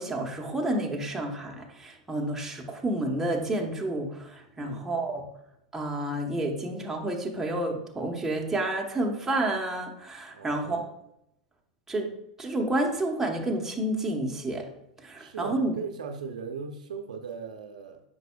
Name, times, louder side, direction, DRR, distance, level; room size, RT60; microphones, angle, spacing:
voice 1, 0.0-5.2 5.7-10.8 11.9-12.1 12.4-14.6 15.0-15.7, right 1 dB, 10° right, 0 dB, 1.1 m, -30 dB
voice 2, 4.6-4.9 10.3-10.9 15.2-18.0, right 5 dB, 80° right, 5 dB, 0.7 m, -38 dB
7.9 x 5.5 x 2.3 m, 0.80 s
hypercardioid pair, 105°, 4 cm